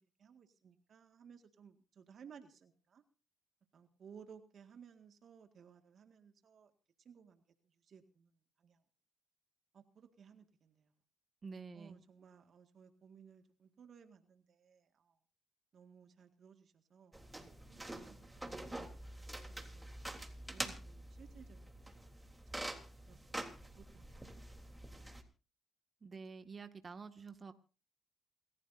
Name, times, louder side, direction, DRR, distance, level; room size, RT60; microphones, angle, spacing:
voice 1, 0.2-3.0 3.7-6.7 7.1-7.4 7.8-8.3 8.6-8.8 9.7-10.9 11.7-15.1 15.7-17.2 17.7-18.9 19.5-21.9 23.1-23.2 23.8-24.3, right 7 dB, 60° right, 1.9 m, -59 dB
voice 2, 11.4-12.0 26.0-27.5, right 4 dB, 40° right, 1.9 m, -49 dB
sound 1, 17.1-25.2, right 1 dB, 10° right, 3.4 m, -46 dB
28.0 x 14.0 x 2.7 m
supercardioid pair, 60°, 0 cm